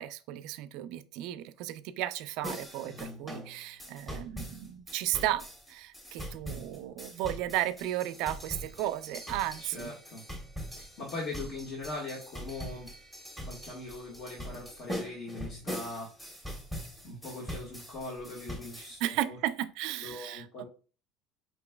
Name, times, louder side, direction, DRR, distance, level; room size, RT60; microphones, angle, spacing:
voice 1, 0.0-10.0 19.0-20.6, right 13 dB, 70° right, 0.4 m, -34 dB
sound 1, 2.4-19.0, equal, 10° left, 1.5 m, -42 dB
voice 2, 9.6-10.2 10.8-12.9 13.4-16.5 17.0-19.4 20.0-20.6, left 2 dB, 55° left, 1.7 m, -41 dB
5.2 x 3.0 x 2.3 m
supercardioid pair, 100°, 0 cm